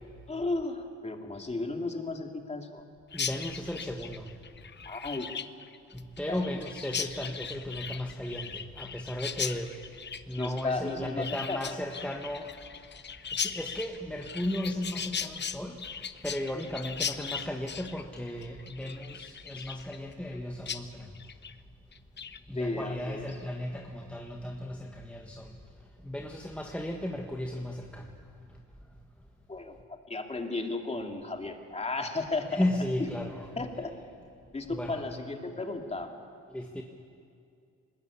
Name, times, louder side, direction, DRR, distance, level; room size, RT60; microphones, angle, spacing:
voice 1, 0.3-2.8 4.8-5.3 6.3-6.6 10.4-11.7 22.5-23.3 29.5-32.6 33.0-33.1 33.6-33.9 34.5-36.1, left 3 dB, 20° left, 3 dB, 2.6 m, -34 dB
Chirp tweet, 3.1-20.4 20.7-20.8 21.1-21.5 21.9-22.4, left 7 dB, 35° left, 0.9 m, -38 dB
voice 2, 3.1-4.3 5.9-9.7 10.3-12.5 13.3-15.8 16.2-21.1 22.5-25.5 26.0-28.1 32.5-33.5 34.7-35.0 36.5-36.8, left 1 dB, 5° left, 1 dB, 1.6 m, -35 dB
21.5 x 20.0 x 8.5 m, 2.3 s
cardioid pair, 90°, 30 cm